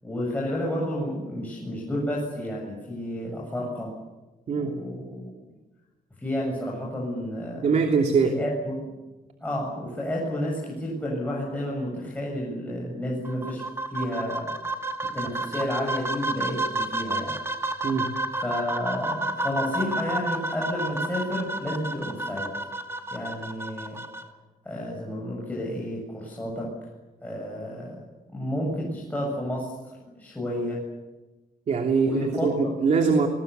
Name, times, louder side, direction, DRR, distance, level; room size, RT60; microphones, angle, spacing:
voice 1, 0.0-3.9 4.5-5.3 6.2-7.7 8.2-8.8 9.4-14.8 15.1-17.4 18.4-22.5 23.1-24.0 24.6-26.7 27.2-28.0 28.3-30.8 32.0-32.7, left 1 dB, 10° left, -3 dB, 7.4 m, -31 dB
voice 2, 7.5-8.4 17.8-18.1 31.7-33.3, right 5 dB, 50° right, 3 dB, 3.0 m, -23 dB
sound 1, 13.2-24.2, right 2 dB, 15° right, 2.4 m, -31 dB
30.0 x 22.0 x 7.0 m, 1.1 s
cardioid pair, 125°, 15 cm